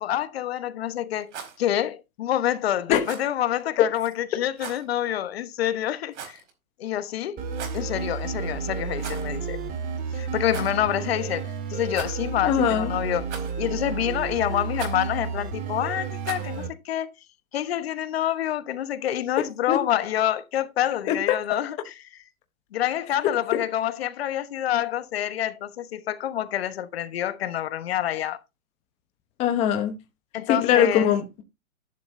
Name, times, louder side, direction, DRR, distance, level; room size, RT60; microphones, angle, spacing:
voice 1, 0.0-1.3 1.6-6.4 6.8-7.4 7.7-9.6 10.1-13.3 13.6-17.1 17.5-21.9 22.7-28.4 30.3-31.1, left 11 dB, 45° left, 1.3 m, -27 dB
Rattle, 1.2-1.6 3.0-3.3 4.6-4.8 6.1-6.5 7.5-7.9 9.0-9.4 9.7-9.8 10.5-10.8 11.9-12.4 13.3-13.7 14.7-15.0 16.2-16.6, right 7 dB, 55° right, 4.6 m, -38 dB
sound 1, 7.4-16.7, right 5 dB, 20° right, 2.0 m, -31 dB
voice 2, 12.4-12.9 19.7-19.8 21.1-21.4 29.4-29.9 30.5-31.4, left 9 dB, 15° left, 0.9 m, -21 dB
11.0 x 10.0 x 2.7 m
hypercardioid pair, 150°, 41 cm